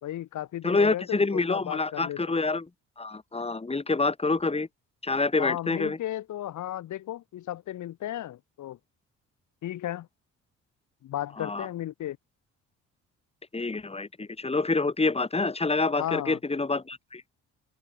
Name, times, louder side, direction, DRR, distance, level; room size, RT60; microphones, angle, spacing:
voice 1, 0.0-2.2 5.4-8.8 9.6-10.1 11.0-12.2 16.0-16.4, left 12 dB, 75° left, 2.3 m, -34 dB
voice 2, 0.6-2.7 3.0-4.7 5.0-6.0 11.4-11.7 13.5-17.2, left 3 dB, 20° left, 3.4 m, -27 dB
cardioid pair, 90°, 30 cm